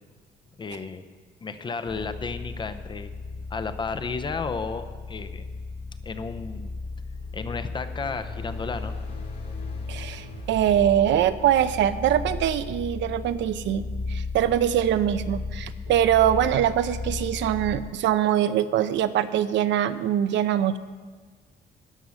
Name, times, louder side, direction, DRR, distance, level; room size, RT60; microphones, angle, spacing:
voice 1, 0.6-1.0 1.4-3.1 3.5-5.5 6.0-6.7 7.3-8.9, left 4 dB, 25° left, 10 dB, 0.6 m, -33 dB
sound 1, 1.9-18.0, left 3 dB, ahead, 1.2 m, -35 dB
sound 2, 7.0-13.6, left 3 dB, 55° left, 2.3 m, -46 dB
voice 2, 9.9-20.8, right 10 dB, 80° right, 12 dB, 0.6 m, -23 dB
13.0 x 9.8 x 6.3 m, 1.5 s
cardioid pair, 170°, 19 cm